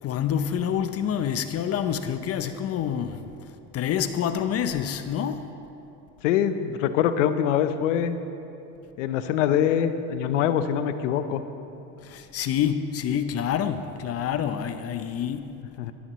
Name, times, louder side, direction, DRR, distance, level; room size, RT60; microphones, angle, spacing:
voice 1, 0.0-5.5 12.0-15.9, left 8 dB, 40° left, 0.7 m, -28 dB
voice 2, 6.2-8.2 9.0-11.4 15.8-15.9, left 9 dB, 90° left, 0.8 m, -24 dB
17.0 x 11.5 x 3.1 m
supercardioid pair, 100°, 36 cm